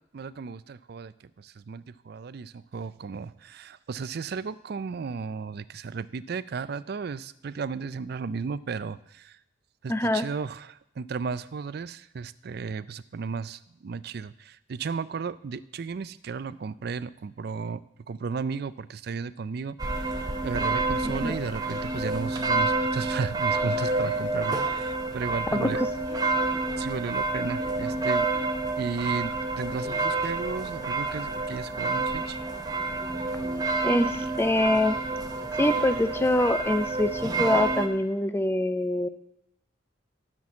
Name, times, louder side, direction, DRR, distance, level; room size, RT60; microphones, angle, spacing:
voice 1, 0.1-9.4 9.8-17.8 18.1-25.8 26.8-28.3 28.8-32.4, right 5 dB, 50° right, 17 dB, 0.4 m, -34 dB
voice 2, 9.9-10.3 21.2-21.4 25.5-25.9 33.8-35.0 35.6-39.1, left 1 dB, 10° left, 11 dB, 0.5 m, -24 dB
sound 1, 19.8-37.9, right 3 dB, 20° right, 0.9 m, -28 dB
12.0 x 6.1 x 7.1 m, 0.81 s
head